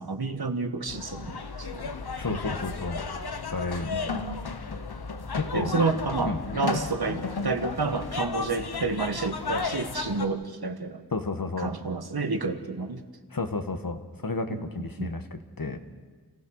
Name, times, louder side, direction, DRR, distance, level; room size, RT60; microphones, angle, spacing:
voice 1, 0.0-1.9 2.3-2.4 3.9-4.4 5.5-11.0 11.6-13.0 14.5-15.1, right 4 dB, 80° right, 8 dB, 1.4 m, -30 dB
sound 1, 0.9-10.3, left 4 dB, 85° left, 1.1 m, -33 dB
voice 2, 2.2-3.0 3.5-4.1 5.3-5.7 6.2-6.4 11.1-11.7 13.3-15.8, left 3 dB, 65° left, 8 dB, 1.6 m, -32 dB
29.0 x 15.5 x 6.5 m, 1.4 s
wide cardioid pair, 55°, 37 cm